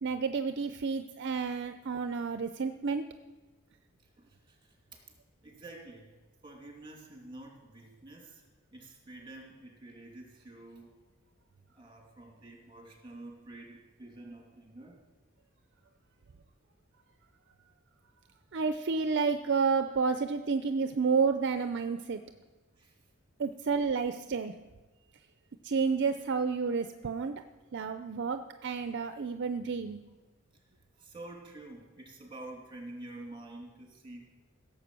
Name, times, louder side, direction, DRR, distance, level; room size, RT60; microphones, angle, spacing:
voice 1, 0.0-3.1 18.5-22.2 23.4-24.5 25.6-27.4 27.7-30.0, right 5 dB, 55° right, 8 dB, 0.5 m, -30 dB
voice 2, 4.2-4.8 5.4-6.1 6.4-11.0 11.7-15.0 22.8-22.9 30.9-34.2, right 2 dB, 25° right, 0 dB, 2.6 m, -48 dB
16.0 x 7.5 x 6.1 m, 1.2 s
head